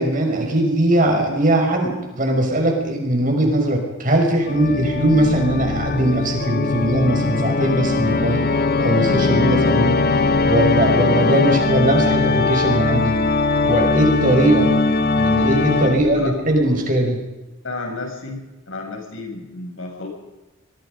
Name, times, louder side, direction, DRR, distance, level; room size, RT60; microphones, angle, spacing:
voice 1, 0.0-8.4 8.8-10.0 10.4-13.2 13.6-14.7 15.2-17.2, right 1 dB, 40° right, 2 dB, 5.8 m, -20 dB
Organ, 4.5-16.3, left 3 dB, 50° left, 1.4 m, -20 dB
voice 2, 17.6-18.4 18.7-20.1, left 3 dB, 70° left, 2 dB, 7.1 m, -31 dB
24.0 x 23.0 x 5.3 m, 1.1 s
head